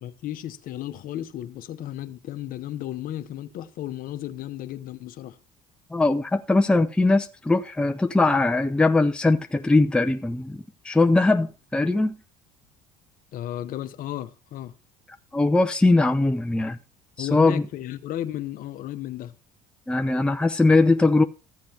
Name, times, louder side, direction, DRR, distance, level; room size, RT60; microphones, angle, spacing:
voice 1, 0.0-5.4 13.3-14.7 17.2-19.4, left 12 dB, 60° left, 0.9 m, -34 dB
voice 2, 5.9-12.2 15.3-16.8 17.2-17.6 19.9-21.2, left 2 dB, 5° left, 0.6 m, -21 dB
14.0 x 7.5 x 2.9 m
supercardioid pair, 85°, 17 cm